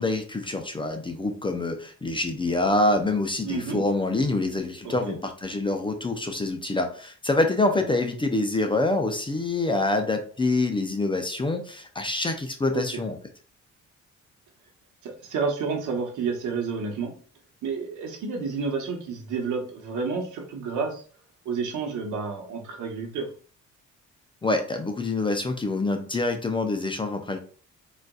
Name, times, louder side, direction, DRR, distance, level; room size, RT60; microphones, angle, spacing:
voice 1, 0.0-13.2 24.4-27.4, left 2 dB, 15° left, 5 dB, 0.4 m, -26 dB
voice 2, 3.4-3.8 4.8-5.2 12.7-13.0 15.0-17.1 17.6-21.0 21.4-23.3, right 5 dB, 75° right, 2 dB, 1.0 m, -30 dB
3.9 x 2.5 x 2.3 m, 0.42 s
cardioid pair, 90°, 30 cm